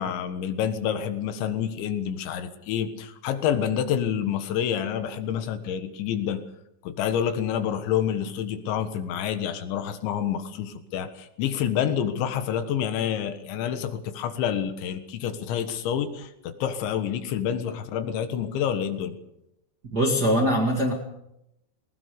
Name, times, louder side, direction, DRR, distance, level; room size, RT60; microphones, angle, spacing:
voice 1, 0.0-6.4 6.8-19.2, left 9 dB, 90° left, 9 dB, 3.9 m, -28 dB
voice 2, 19.9-20.9, equal, 35° right, 0 dB, 1.6 m, -22 dB
20.0 x 20.0 x 6.9 m, 0.85 s
omnidirectional pair, 5.1 m